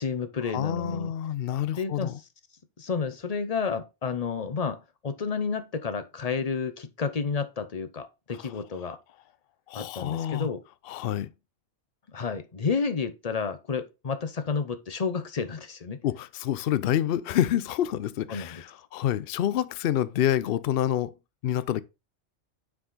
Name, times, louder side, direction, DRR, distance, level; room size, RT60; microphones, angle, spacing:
voice 1, 0.0-1.1 1.8-2.1 2.8-9.0 9.7-10.6 12.1-16.0 18.3-18.6, left 5 dB, 35° left, 0.8 m, -31 dB
voice 2, 0.5-2.2 9.7-10.5 10.9-11.3 16.0-21.1 21.4-21.8, left 11 dB, 65° left, 0.7 m, -27 dB
6.2 x 4.9 x 4.1 m
omnidirectional pair, 1.2 m